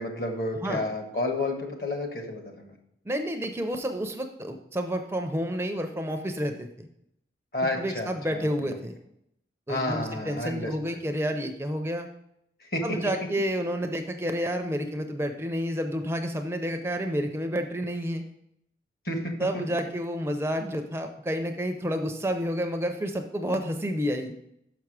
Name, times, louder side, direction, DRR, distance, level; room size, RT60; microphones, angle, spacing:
voice 1, 0.0-2.7 7.5-8.8 9.7-10.7 12.7-12.8 19.0-19.3, left 2 dB, 55° left, 3 dB, 1.3 m, -31 dB
voice 2, 3.1-6.9 7.8-8.9 9.7-12.1 12.8-18.2 19.4-24.3, equal, 15° right, 5 dB, 0.4 m, -30 dB
6.1 x 5.9 x 4.8 m, 0.77 s
head